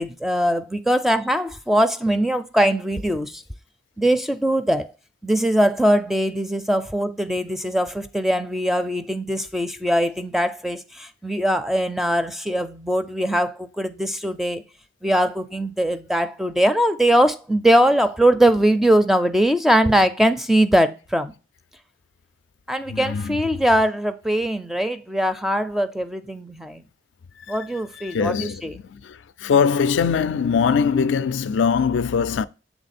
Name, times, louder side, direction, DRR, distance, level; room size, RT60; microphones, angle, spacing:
voice 1, 0.0-3.4 4.0-4.9 5.2-14.6 15.0-21.4 22.7-26.8 27.5-28.8, equal, ahead, 0.4 m, -21 dB
voice 2, 22.9-23.4 27.4-27.7 27.9-32.5, left 6 dB, 80° left, 0.4 m, -22 dB
7.1 x 3.4 x 4.2 m
head